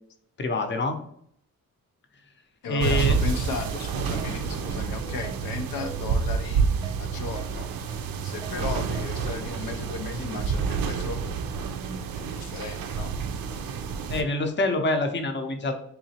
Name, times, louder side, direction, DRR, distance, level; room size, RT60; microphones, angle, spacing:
voice 1, 0.4-1.0 2.7-3.2 14.1-15.7, left 1 dB, 30° left, 6 dB, 0.6 m, -26 dB
voice 2, 2.6-6.7 7.0-7.7 8.2-11.2 12.1-13.2, left 5 dB, 85° left, 6 dB, 0.5 m, -35 dB
sound 1, 2.8-14.2, right 5 dB, 75° right, 0.5 m, -29 dB
Keyboard (musical), 3.1-3.2 3.6-3.8 4.2-4.3 4.7-4.8 5.2-5.4 5.8-5.9 6.3-6.4 6.8-7.0 7.4-7.5 7.9-8.0 8.4-8.6 8.9-9.1, right 6 dB, 10° right, 0.3 m, -43 dB
3.8 x 2.9 x 2.8 m, 0.68 s
cardioid pair, 75°, 35 cm